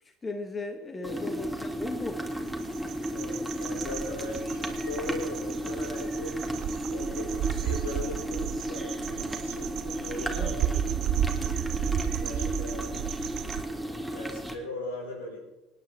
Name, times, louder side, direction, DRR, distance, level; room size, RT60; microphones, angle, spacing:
voice 1, 0.0-2.5 10.3-10.5, left 3 dB, 25° left, 7 dB, 1.3 m, -37 dB
sound 1, 1.0-14.6, right 1 dB, 5° left, 2.2 m, -34 dB
sound 2, 2.6-13.6, right 11 dB, 50° right, 0.5 m, -33 dB
voice 2, 3.1-6.3 6.9-11.0 11.7-13.1 13.6-15.4, left 2 dB, 75° left, 0 dB, 4.4 m, -40 dB
26.0 x 9.8 x 3.4 m, 0.96 s
figure-of-eight pair, 60°, 0 cm